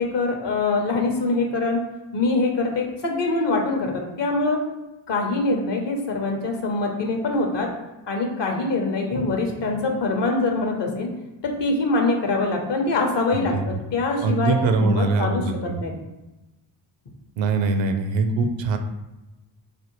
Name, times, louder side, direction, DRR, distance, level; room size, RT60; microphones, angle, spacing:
voice 1, 0.0-1.8 2.1-4.6 5.1-7.7 8.1-11.1 11.4-15.9, left 3 dB, 60° left, 2 dB, 0.9 m, -24 dB
voice 2, 13.3-13.7 14.2-15.8 17.4-18.8, right 3 dB, 65° right, 7 dB, 0.6 m, -23 dB
3.4 x 2.1 x 3.0 m, 1.0 s
hypercardioid pair, 40°, 48 cm